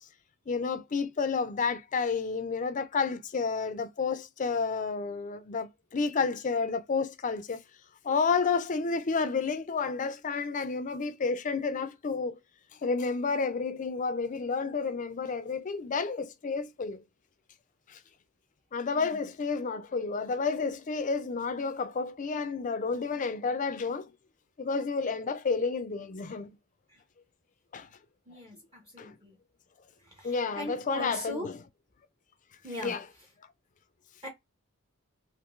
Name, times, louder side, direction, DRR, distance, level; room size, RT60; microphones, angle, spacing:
voice 1, 0.5-7.6 8.0-12.4 12.8-17.0 17.9-18.0 18.7-24.1 24.6-26.5 27.7-27.9 29.0-29.1 30.2-31.5 32.8-33.0, left 4 dB, 35° left, 0.4 m, -30 dB
voice 2, 28.3-29.4 30.0-31.5 32.6-33.3 34.2-34.3, equal, 25° right, 0.7 m, -41 dB
3.6 x 2.5 x 2.4 m
head